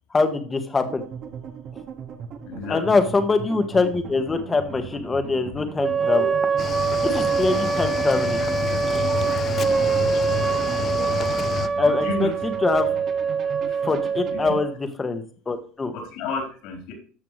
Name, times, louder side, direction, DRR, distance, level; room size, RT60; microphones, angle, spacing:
voice 1, 0.1-1.0 2.7-6.3 7.0-8.4 8.8-9.1 11.8-12.9 13.8-14.7 15.0-15.9, left 3 dB, 20° left, 7 dB, 1.6 m, -23 dB
sound 1, 0.8-14.3, right 6 dB, 50° right, 1.9 m, -39 dB
voice 2, 2.4-2.8 6.1-6.4 11.0-11.1 11.8-12.3 13.7-13.8 14.3-14.5 15.9-16.9, left 2 dB, 70° left, 1 dB, 4.0 m, -31 dB
sound 2, 5.8-14.8, right 6 dB, 25° right, 0.6 m, -24 dB
Cricket / Waves surf, 6.6-11.7, left 9 dB, 40° left, 0.6 m, -29 dB
13.5 x 5.9 x 3.2 m, 0.42 s
supercardioid pair, 110°, 0 cm